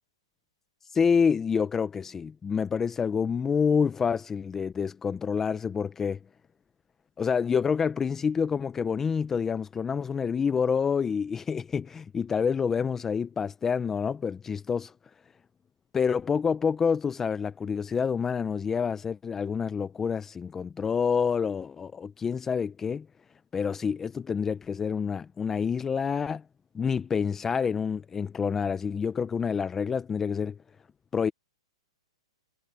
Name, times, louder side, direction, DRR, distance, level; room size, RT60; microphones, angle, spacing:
voice 1, 0.9-6.2 7.2-14.9 15.9-23.1 23.5-26.4 26.7-30.6 31.1-31.3, left 6 dB, 10° left, 0.6 m, -27 dB
hypercardioid pair, 155°, 3 cm